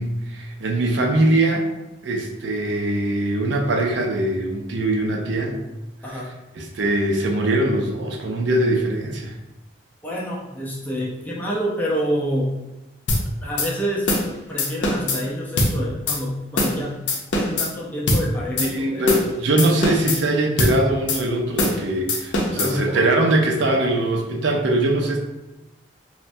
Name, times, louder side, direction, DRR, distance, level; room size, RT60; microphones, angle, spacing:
voice 1, 0.0-1.6 2.0-5.6 6.5-9.3 18.6-25.2, right 1 dB, 70° right, 1 dB, 0.5 m, -22 dB
voice 2, 10.0-12.5 13.4-14.1 14.5-19.1 22.6-23.4, equal, 10° left, -5 dB, 0.5 m, -28 dB
sound 1, 13.1-13.2 13.6-13.7 14.1-14.3 14.6-15.2 15.6-15.7 16.1-16.2 16.6-16.8 17.1-17.7 18.1-18.2 18.6-18.7 19.1-19.3 19.6-20.2 20.6-20.8 21.1-21.2 21.6-21.8 22.1-22.7, left 2 dB, 80° left, 0.5 m, -21 dB
3.3 x 2.1 x 2.6 m, 0.97 s
head